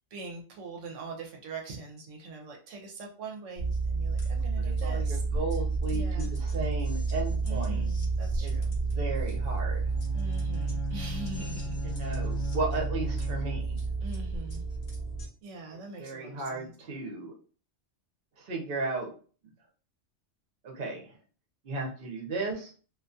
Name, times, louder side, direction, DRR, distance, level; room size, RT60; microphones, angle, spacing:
voice 1, 0.1-5.2 5.9-6.3 7.4-8.7 10.1-12.2 14.0-14.6 15.4-16.7, right 3 dB, 80° right, 1 dB, 0.9 m, -42 dB
sound 1, 3.6-15.3, right 4 dB, 40° left, 0.7 m, -30 dB
voice 2, 4.6-7.8 8.4-9.9 11.8-13.8 16.0-17.3 18.4-19.1 20.6-21.1 21.6-22.7, right 3 dB, 55° right, 0 dB, 0.9 m, -35 dB
Bowed string instrument, 9.9-14.1, left 3 dB, 70° left, 0.9 m, -39 dB
2.4 x 2.2 x 2.5 m, 0.40 s
omnidirectional pair, 1.3 m